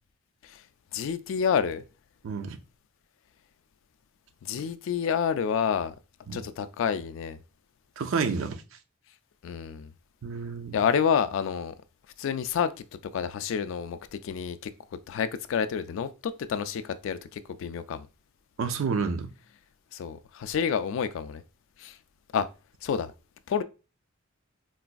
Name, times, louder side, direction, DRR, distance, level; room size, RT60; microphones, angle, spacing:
voice 1, 0.9-1.8 4.4-5.9 6.3-7.4 9.4-9.9 10.7-11.7 12.2-12.7 13.1-14.7 15.1-18.1 19.9-21.4 21.8-22.0 22.3-22.5 22.8-23.1 23.5-23.6, left 7 dB, 65° left, 0.3 m, -29 dB
voice 2, 2.2-2.6 6.3-6.4 8.0-8.6 10.2-10.8 18.6-19.3, right 5 dB, 70° right, 0.4 m, -29 dB
3.9 x 2.5 x 2.2 m
head